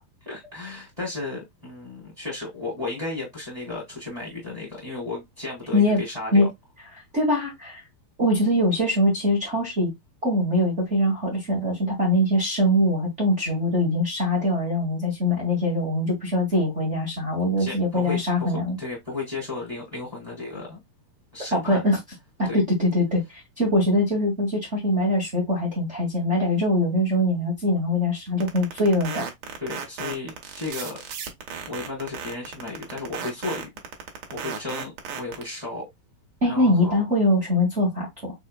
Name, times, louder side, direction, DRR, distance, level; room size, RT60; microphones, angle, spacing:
voice 1, 0.2-6.5 17.6-20.8 21.3-21.8 22.5-22.6 29.6-31.0 31.7-33.7 34.3-35.9 36.4-37.0, left 3 dB, 10° right, 2.7 m, -34 dB
voice 2, 5.7-6.0 6.3-6.5 7.1-7.8 8.2-9.9 10.2-18.8 21.5-22.0 22.4-23.2 23.6-29.3 36.4-38.3, left 1 dB, 40° right, 0.9 m, -22 dB
sound 1, 28.4-35.4, right 7 dB, 65° right, 1.7 m, -34 dB
5.6 x 4.2 x 2.2 m
omnidirectional pair, 4.4 m